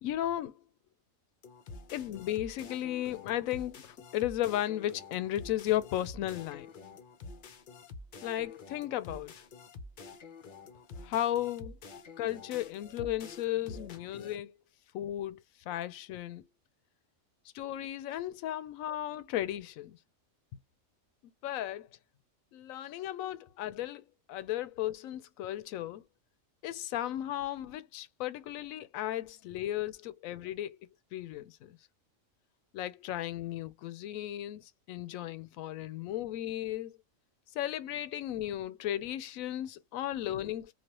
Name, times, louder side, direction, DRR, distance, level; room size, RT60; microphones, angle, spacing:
voice 1, 0.0-0.6 1.9-6.7 8.2-9.4 11.0-11.8 12.2-14.5 14.9-16.5 17.5-20.0 21.4-21.9 22.5-26.0 26.6-31.8 32.7-37.0 37.5-40.7, left 13 dB, 80° left, 1.0 m, -35 dB
sound 1, 1.4-14.4, left 4 dB, 50° left, 0.6 m, -48 dB
3.2 x 2.3 x 2.8 m
omnidirectional pair, 1.4 m